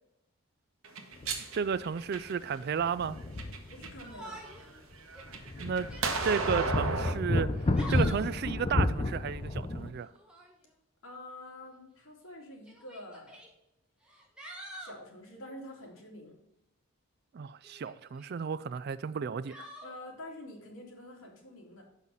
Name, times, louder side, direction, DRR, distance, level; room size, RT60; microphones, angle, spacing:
sound 1, 0.8-2.6 3.2-4.0 4.4-7.1, right 4 dB, 70° right, 1.2 m, -34 dB
sound 2, 1.2-1.4 1.7-1.8 2.7-4.2 4.5-4.6 5.2-9.9, left 2 dB, 25° left, 0.5 m, -31 dB
voice 1, 1.5-3.2 5.6-5.9 6.2-7.5 7.9-10.1 17.3-19.7, right 6 dB, 50° right, 0.3 m, -33 dB
voice 2, 3.7-4.4 11.0-13.4 14.8-16.4 19.8-21.8, left 1 dB, 75° left, 2.6 m, -47 dB
Yell, 4.0-4.7 5.1-5.2 5.8-6.7 7.5-8.4 10.1-10.5 11.7-11.8 12.7-13.5 14.0-15.0 17.6-18.3 19.5-19.9, right 1 dB, 5° right, 1.4 m, -47 dB
6.2 x 5.7 x 5.4 m
head